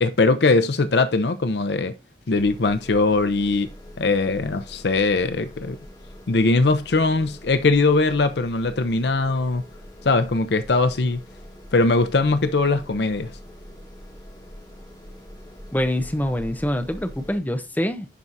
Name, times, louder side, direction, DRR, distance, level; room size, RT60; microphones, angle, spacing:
voice 1, 0.0-1.9 2.3-3.7 4.0-5.8 6.3-9.6 10.0-11.2 11.7-13.3, left 3 dB, 75° left, 0.6 m, -20 dB
sound 1, 2.3-17.4, equal, 25° left, 2.2 m, -43 dB
voice 2, 15.7-18.1, left 1 dB, 10° left, 0.7 m, -25 dB
11.0 x 4.6 x 2.6 m
head